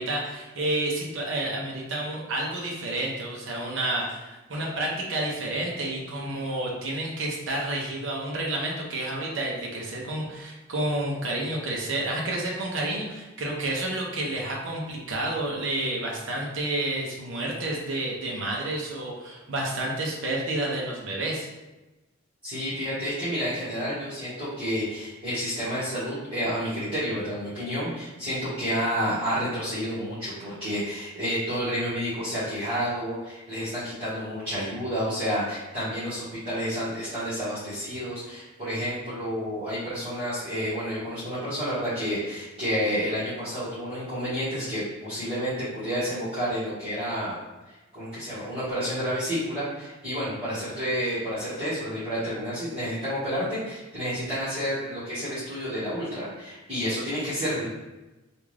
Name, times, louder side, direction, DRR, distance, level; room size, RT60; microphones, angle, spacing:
voice 1, 0.0-21.5, right 1 dB, 65° right, -2 dB, 0.7 m, -30 dB
voice 2, 22.4-47.4 47.7-57.7, equal, 30° right, -15 dB, 1.5 m, -30 dB
3.5 x 2.5 x 3.2 m, 1.1 s
head